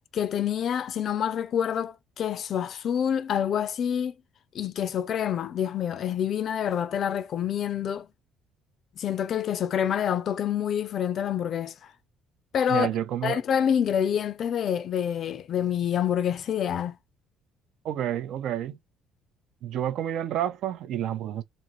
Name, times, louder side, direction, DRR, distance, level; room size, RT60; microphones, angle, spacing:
voice 1, 0.1-4.1 4.5-8.1 9.0-11.9 12.5-12.9 13.2-17.0, left 9 dB, 55° left, 0.4 m, -27 dB
voice 2, 12.7-13.4 17.8-18.8 19.6-21.4, right 11 dB, 70° right, 0.5 m, -29 dB
2.5 x 2.5 x 2.8 m
cardioid pair, 95°, 0 cm